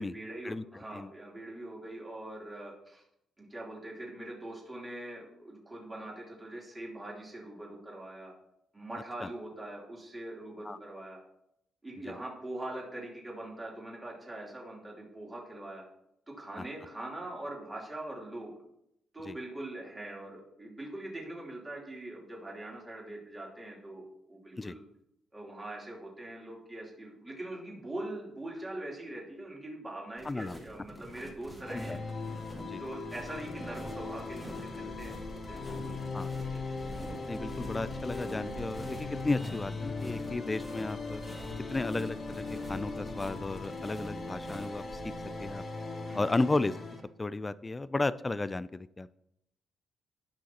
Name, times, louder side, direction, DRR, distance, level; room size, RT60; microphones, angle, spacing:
voice 1, 0.0-3.0 3.4-8.3 8.7-11.2 11.8-15.8 16.3-18.5 19.1-24.8 25.3-32.0 32.8-36.0 36.5-36.6 46.1-46.2, right 1 dB, 15° right, -3 dB, 3.1 m, -42 dB
voice 2, 30.2-30.6 31.7-32.0 32.6-32.8 36.1-36.3 37.3-41.2 41.7-45.1 45.4-45.6 46.1-46.7 47.2-49.1, left 2 dB, 15° left, 16 dB, 0.3 m, -34 dB
sound 1, 30.2-45.5, equal, ahead, 1.8 m, -46 dB
sound 2, 31.6-47.0, left 3 dB, 35° left, 2.2 m, -39 dB
18.5 x 6.4 x 2.9 m, 0.79 s
cardioid pair, 145°, 0 cm